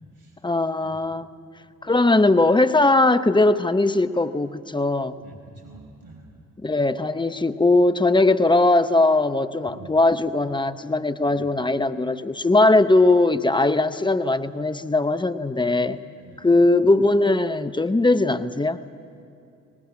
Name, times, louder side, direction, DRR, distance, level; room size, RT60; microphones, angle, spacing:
voice 1, 0.4-1.3 1.8-5.2 6.6-16.0 16.4-18.8, left 2 dB, 10° left, 11 dB, 0.8 m, -20 dB
voice 2, 5.2-6.3 9.7-10.0 11.3-11.5 16.2-16.5, right 2 dB, 65° right, 1 dB, 5.4 m, -46 dB
19.0 x 18.5 x 8.6 m, 2.6 s
hypercardioid pair, 45°, 38 cm